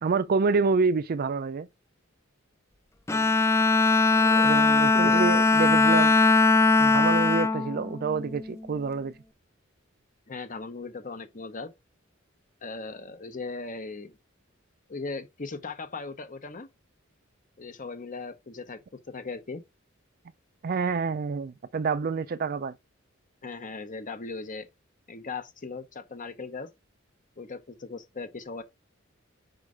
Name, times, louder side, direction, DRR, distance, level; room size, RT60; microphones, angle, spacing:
voice 1, 0.0-1.7 4.4-6.2 6.8-9.2 20.6-22.7, right 4 dB, 45° right, 0.4 m, -27 dB
Bowed string instrument, 3.1-8.6, left 3 dB, 15° left, 0.4 m, -21 dB
voice 2, 4.1-4.5 5.0-5.2 10.3-11.7 12.6-14.2 14.9-16.7 17.6-18.8 19.1-19.6 23.4-24.7 25.1-26.7 27.4-28.6, left 4 dB, 40° left, 0.9 m, -38 dB
5.2 x 4.8 x 4.8 m
head